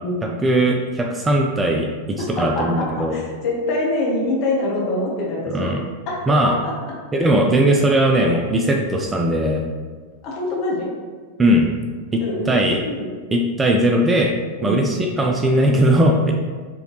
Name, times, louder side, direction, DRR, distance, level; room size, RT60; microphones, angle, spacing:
voice 1, 0.4-3.2 5.5-5.8 6.3-6.5 7.1-9.6 11.4-11.7 12.1-12.8 13.3-14.3 14.6-16.3, right 1 dB, 15° right, 1 dB, 0.4 m, -18 dB
voice 2, 2.2-5.7 6.1-6.2 6.4-6.7 10.2-10.9 12.2-13.1 14.6-14.8, left 2 dB, 40° left, -3 dB, 1.2 m, -25 dB
4.6 x 3.2 x 3.1 m, 1.5 s
figure-of-eight pair, 90°, 0 cm